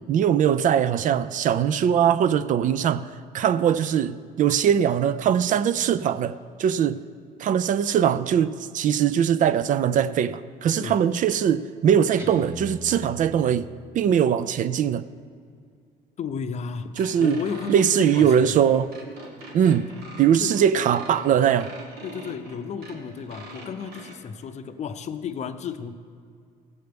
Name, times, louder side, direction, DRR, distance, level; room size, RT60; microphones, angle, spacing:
voice 1, 0.1-3.1 3.3-7.0 7.4-13.7 13.9-15.0 17.0-17.4 17.7-18.9 19.5-19.9 20.2-21.7, right 8 dB, 50° right, 0.4 m, -21 dB
Guitar, 12.2-14.2, right 1 dB, 15° right, 1.3 m, -40 dB
voice 2, 16.2-16.9 17.2-18.5 20.4-20.5 22.0-25.9, left 6 dB, 40° left, 0.6 m, -33 dB
sound 1, 17.0-24.2, right 2 dB, 70° right, 1.5 m, -43 dB
16.0 x 7.9 x 3.4 m
cardioid pair, 110°, 17 cm